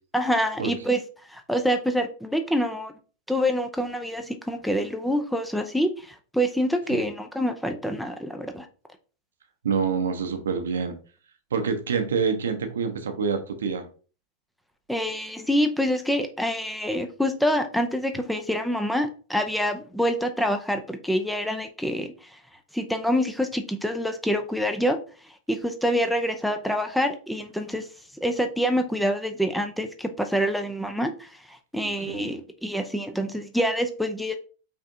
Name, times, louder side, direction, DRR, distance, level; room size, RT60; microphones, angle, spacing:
voice 1, 0.1-1.0 1.3-2.9 3.3-8.7 14.9-22.4 22.7-25.0 25.5-27.8 28.2-34.4, equal, ahead, 0.6 m, -26 dB
voice 2, 9.6-11.0 11.5-13.9 31.8-32.3, right 6 dB, 65° right, 0.8 m, -27 dB
5.4 x 3.5 x 2.7 m
figure-of-eight pair, 90°, 0 cm